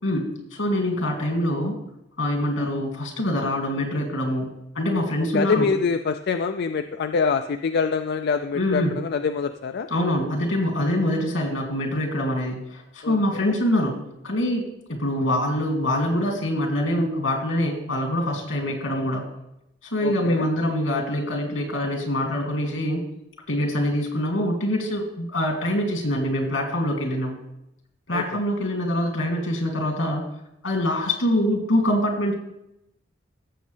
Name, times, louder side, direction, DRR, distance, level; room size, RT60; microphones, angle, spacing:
voice 1, 0.0-1.8 2.2-4.5 4.7-5.7 8.6-9.0 9.9-14.0 14.2-19.2 19.9-23.0 23.5-27.4 28.1-30.2 30.6-32.3, left 1 dB, 80° left, 1 dB, 2.6 m, -24 dB
voice 2, 5.3-9.9 13.0-13.5 20.0-20.5 28.1-28.2, left 5 dB, 55° left, 8 dB, 0.4 m, -25 dB
15.5 x 7.4 x 3.3 m, 0.84 s
head